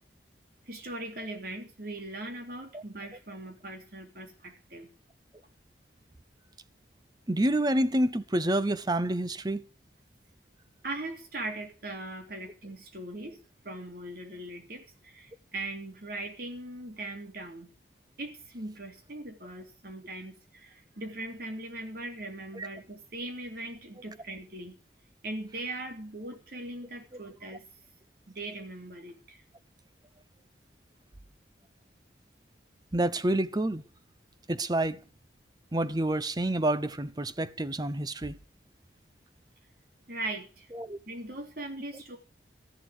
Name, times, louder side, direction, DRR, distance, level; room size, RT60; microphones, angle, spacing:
voice 1, 0.7-4.9 10.8-17.7 18.2-24.8 25.2-27.6 28.3-29.4 40.1-40.7 41.1-42.2, right 2 dB, 55° right, 3.3 m, -40 dB
voice 2, 7.3-9.6 22.6-22.7 32.9-33.8 34.5-35.0 35.7-38.4 40.7-41.0, right 1 dB, 20° right, 0.8 m, -28 dB
13.5 x 11.0 x 6.5 m
head